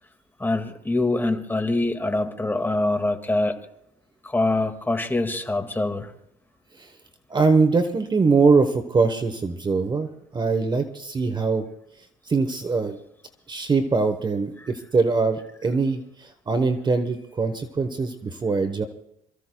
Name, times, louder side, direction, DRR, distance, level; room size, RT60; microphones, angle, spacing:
voice 1, 0.4-3.6 4.2-6.1 14.6-14.7, left 2 dB, 10° left, 5 dB, 1.9 m, -24 dB
voice 2, 7.3-11.7 12.3-13.0 13.5-18.8, right 4 dB, 25° right, 8 dB, 1.1 m, -22 dB
27.5 x 15.5 x 2.3 m, 0.77 s
cardioid pair, 110°, 17 cm